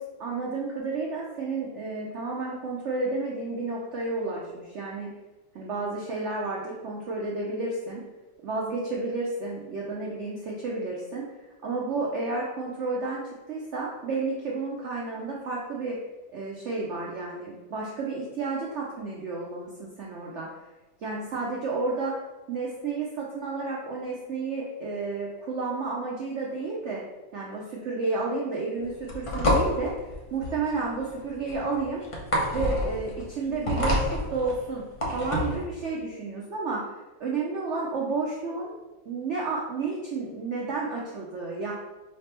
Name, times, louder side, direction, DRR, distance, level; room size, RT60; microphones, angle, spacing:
voice 1, 0.2-5.1 5.5-8.0 8.4-11.3 11.6-16.0 16.3-20.5 21.0-22.1 22.5-27.0 27.3-32.0 32.5-38.7 39.0-41.7, right 3 dB, 80° right, -3 dB, 0.6 m, -31 dB
sound 1, 28.8-35.6, left 1 dB, 45° left, 0.4 m, -28 dB
4.9 x 2.9 x 3.3 m, 1.1 s
omnidirectional pair, 1.9 m